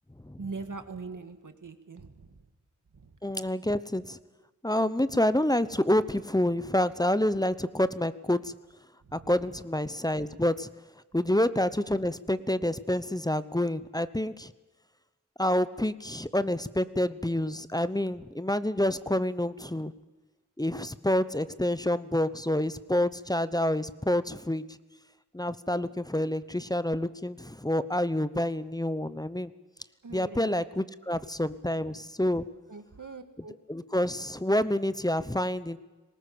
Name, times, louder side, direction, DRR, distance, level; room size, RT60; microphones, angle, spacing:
voice 1, 0.4-2.4 2.9-3.1 9.0-9.3 25.8-26.0 30.0-30.6 32.7-33.6, right 4 dB, 85° right, 8 dB, 1.8 m, -42 dB
voice 2, 3.2-4.2 4.6-8.5 9.1-10.7 11.1-14.5 15.4-19.9 20.6-24.6 25.3-29.5 30.1-32.5 33.7-35.8, left 1 dB, 10° left, 14 dB, 0.9 m, -28 dB
20.5 x 18.5 x 8.6 m, 1.2 s
wide cardioid pair, 60°, 31 cm